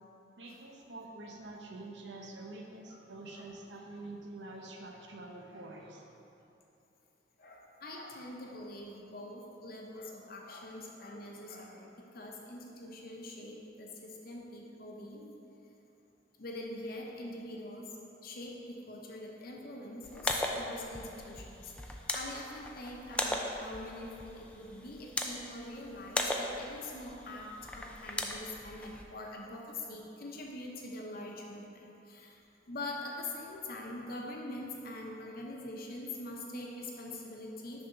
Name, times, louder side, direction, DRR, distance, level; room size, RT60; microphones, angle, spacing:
voice 1, 0.4-6.1, right 2 dB, 75° right, 1 dB, 0.8 m, -46 dB
voice 2, 7.4-15.3 16.4-37.9, left 2 dB, 55° left, -1 dB, 0.9 m, -44 dB
sound 1, 20.0-29.0, left 1 dB, 5° left, 0.4 m, -38 dB
6.6 x 3.6 x 5.8 m, 2.8 s
head